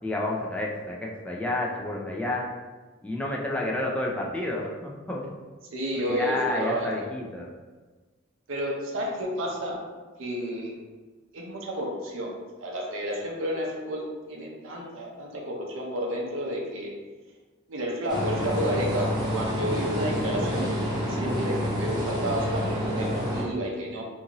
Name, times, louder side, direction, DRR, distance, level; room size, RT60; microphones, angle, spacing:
voice 1, 0.0-2.4 3.0-5.3 6.1-7.5, left 1 dB, 5° left, -2 dB, 0.4 m, -30 dB
voice 2, 5.7-7.1 8.5-9.9 10.2-10.8 11.3-16.9 17.7-20.8 21.1-24.0, equal, 70° right, -1 dB, 0.6 m, -31 dB
sound 1, 18.1-23.4, equal, 20° right, 0.9 m, -28 dB
2.6 x 2.5 x 2.8 m, 1.3 s
head